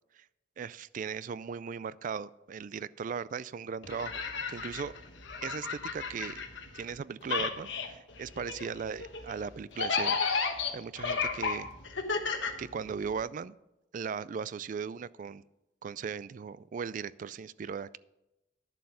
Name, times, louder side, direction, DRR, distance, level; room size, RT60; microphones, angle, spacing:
voice 1, 0.6-4.2 4.5-4.9 5.4-6.4 6.7-10.2 10.7-11.7 12.6-13.6 13.9-15.4 15.8-18.0, right 6 dB, 45° right, 19 dB, 0.3 m, -38 dB
sound 1, 3.8-7.0 7.2-13.2, left 5 dB, 75° left, 1.2 m, -33 dB
11.0 x 7.5 x 5.6 m, 0.94 s
head